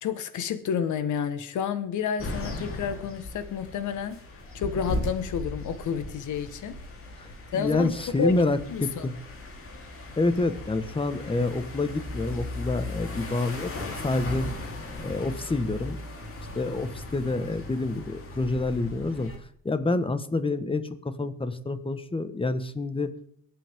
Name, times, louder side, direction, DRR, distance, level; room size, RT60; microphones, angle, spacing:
voice 1, 0.0-4.2 4.5-6.8 7.5-7.9 8.2-8.4 8.7-9.1, left 7 dB, 75° left, 11 dB, 1.5 m, -30 dB
sound 1, 2.2-19.4, left 2 dB, 45° left, 3.6 m, -37 dB
voice 2, 7.2-9.2 10.2-14.5 15.0-16.0 16.5-19.3 19.6-23.1, left 2 dB, 20° left, 11 dB, 1.4 m, -28 dB
22.5 x 8.7 x 3.7 m, 0.65 s
cardioid pair, 90°, 30 cm